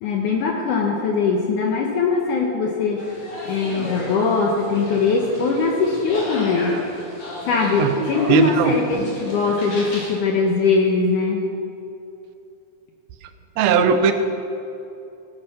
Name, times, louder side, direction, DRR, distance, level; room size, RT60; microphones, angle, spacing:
voice 1, 0.0-3.0 3.5-6.8 7.4-11.4, left 4 dB, 65° left, 0 dB, 2.4 m, -21 dB
sound 1, 3.0-10.2, left 1 dB, 50° left, 4.8 m, -33 dB
voice 2, 7.8-9.1 13.6-14.1, right 6 dB, 80° right, 8 dB, 2.7 m, -19 dB
17.0 x 11.5 x 5.9 m, 2.7 s
omnidirectional pair, 4.3 m